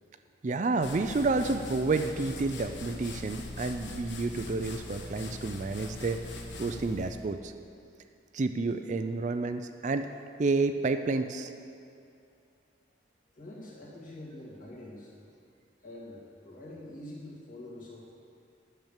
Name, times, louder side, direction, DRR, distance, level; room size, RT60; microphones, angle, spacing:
voice 1, 0.4-6.2 6.6-7.5 8.3-10.1 10.4-11.5, right 3 dB, 40° right, 8 dB, 0.4 m, -30 dB
sound 1, 0.8-7.3, left 2 dB, 70° left, 1.1 m, -41 dB
voice 2, 13.3-15.1 15.8-18.0, left 1 dB, 45° left, -4 dB, 2.2 m, -45 dB
10.5 x 6.8 x 7.3 m, 2.4 s
head